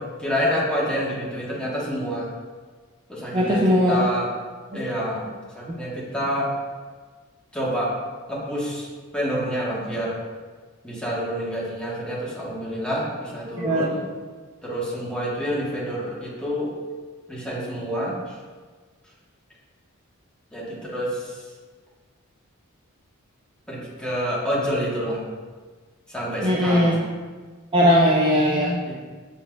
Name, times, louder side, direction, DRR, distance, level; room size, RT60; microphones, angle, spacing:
voice 1, 0.0-2.3 3.1-4.3 4.7-5.3 5.5-6.5 7.5-7.9 8.3-8.9 9.1-10.1 10.8-14.0 14.6-16.7 17.3-18.3 20.5-21.4 23.7-25.2 26.1-27.0 28.9-29.0, equal, 5° left, -6 dB, 1.0 m, -28 dB
voice 2, 3.3-4.0 13.6-13.8 26.4-26.9 27.7-28.8, equal, 25° right, -4 dB, 0.4 m, -19 dB
6.1 x 3.9 x 2.2 m, 1.4 s
head